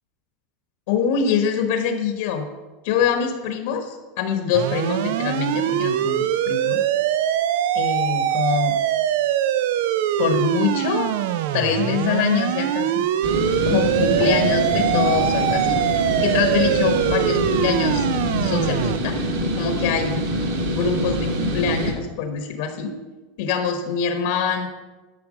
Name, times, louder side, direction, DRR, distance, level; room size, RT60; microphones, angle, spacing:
voice 1, 0.9-2.5 2.8-6.8 7.7-8.8 10.2-11.1 11.5-13.0 13.7-15.8 16.2-18.1 18.4-19.2 19.6-20.2 20.7-22.9 23.4-24.7, left 6 dB, 75° left, 5 dB, 1.3 m, -24 dB
sound 1, 4.5-19.0, right 11 dB, 70° right, 0.5 m, -22 dB
sound 2, 13.2-21.9, equal, 90° right, 2.3 m, -25 dB
12.5 x 5.8 x 5.2 m, 1.2 s
supercardioid pair, 145°, 0 cm